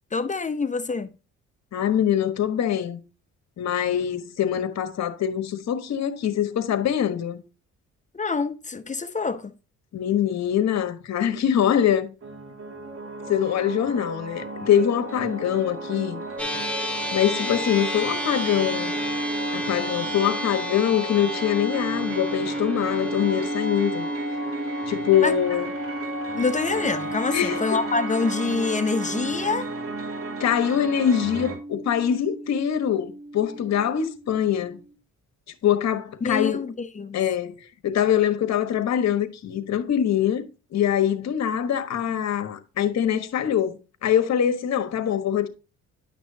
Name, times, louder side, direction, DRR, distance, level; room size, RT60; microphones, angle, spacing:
voice 1, 0.1-1.1 8.1-9.6 25.2-25.3 26.3-29.7 36.2-37.2, left 4 dB, 25° left, 0.8 m, -26 dB
voice 2, 1.7-3.0 3.6-7.4 9.9-12.1 13.3-16.2 17.1-18.9 19.5-24.1 24.9-25.7 27.3-27.8 30.4-34.8 35.6-36.6 37.1-40.4 40.7-45.5, left 9 dB, 60° left, 1.3 m, -23 dB
sound 1, 12.2-31.6, right 2 dB, 45° right, 2.4 m, -35 dB
sound 2, 16.4-34.9, right 1 dB, 5° left, 1.9 m, -32 dB
10.5 x 6.1 x 2.8 m
cardioid pair, 90°, 30 cm